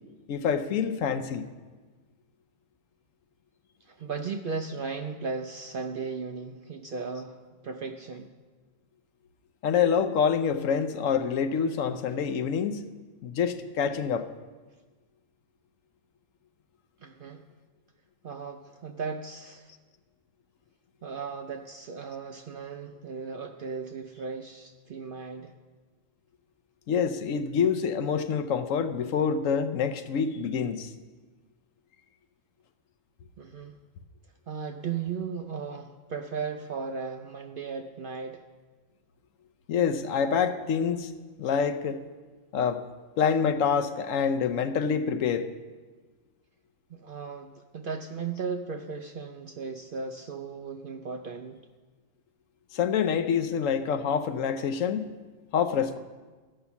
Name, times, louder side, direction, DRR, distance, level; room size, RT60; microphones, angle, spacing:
voice 1, 0.3-1.5 9.6-12.9 13.2-14.3 26.9-30.9 39.7-41.1 41.4-42.0 42.5-42.8 43.2-45.5 52.7-55.1 55.5-56.0, left 7 dB, 75° left, 9 dB, 1.0 m, -26 dB
voice 2, 3.8-8.4 17.0-17.5 18.2-19.7 21.0-25.5 33.4-33.8 34.5-38.4 46.9-51.6, right 5 dB, 60° right, 5 dB, 0.5 m, -36 dB
13.5 x 5.7 x 7.0 m, 1.3 s
omnidirectional pair, 1.4 m